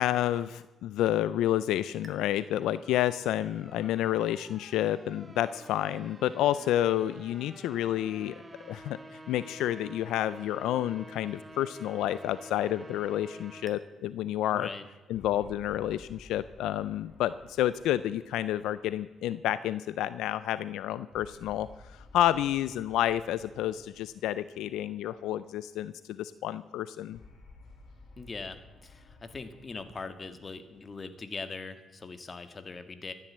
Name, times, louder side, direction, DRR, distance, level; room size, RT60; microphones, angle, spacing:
voice 1, 0.0-9.0 9.3-14.7 15.1-27.2, left 12 dB, 85° left, 15 dB, 0.5 m, -30 dB
sound 1, 2.0-13.8, right 1 dB, 20° right, 1.9 m, -50 dB
voice 2, 14.5-14.9 28.2-33.1, left 4 dB, 35° left, 10 dB, 1.8 m, -41 dB
sound 2, 15.1-19.7 21.1-25.5 27.1-31.7, left 2 dB, 65° left, 4.9 m, -55 dB
14.5 x 11.0 x 7.5 m, 1.2 s
cardioid pair, 75°, 0 cm